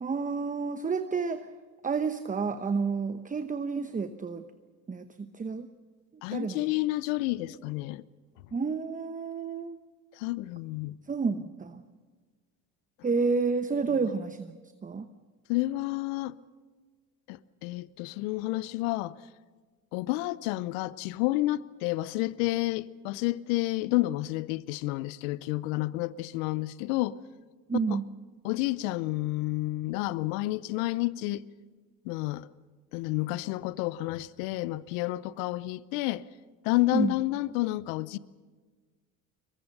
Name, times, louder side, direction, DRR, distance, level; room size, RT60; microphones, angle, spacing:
voice 1, 0.0-1.5 1.8-4.4 4.9-5.7 6.3-6.7 8.5-9.8 11.1-11.8 13.0-14.5 14.8-15.1 27.7-28.0 36.9-37.1, right 4 dB, 20° right, 1.0 m, -30 dB
voice 2, 6.2-8.0 10.2-11.0 15.5-16.3 17.3-19.2 19.9-27.2 28.4-31.4 32.0-32.5 32.9-36.2 36.6-38.2, left 18 dB, 70° left, 0.8 m, -30 dB
23.0 x 21.0 x 6.7 m
hypercardioid pair, 70°, 42 cm